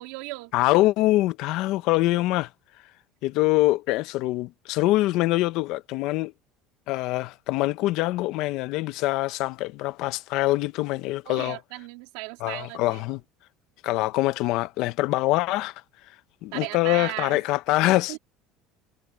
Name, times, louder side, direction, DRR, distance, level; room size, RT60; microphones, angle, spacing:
voice 1, 0.0-0.5 11.3-13.0 16.5-17.4 18.1-18.2, right 23 dB, 80° right, 3.4 m, -36 dB
voice 2, 0.5-2.5 3.2-6.3 6.9-11.6 12.4-13.2 13.8-15.8 16.4-18.2, left 18 dB, 55° left, 0.7 m, -24 dB
cardioid pair, 170°, 0 cm